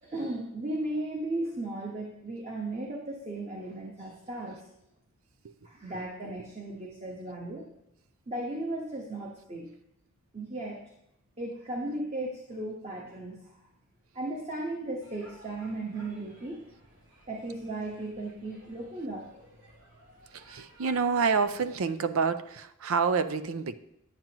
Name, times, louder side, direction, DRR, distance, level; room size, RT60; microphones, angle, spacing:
voice 1, 0.0-4.6 5.6-7.6 8.3-9.7 10.3-10.8 11.4-13.5 14.1-16.6 17.3-19.3, right 2 dB, 30° right, -2 dB, 1.2 m, -36 dB
sound 1, 15.0-21.6, equal, 60° right, 3.5 m, -56 dB
voice 2, 20.3-23.7, right 5 dB, 80° right, 12 dB, 0.5 m, -28 dB
10.5 x 9.0 x 3.0 m, 0.81 s
head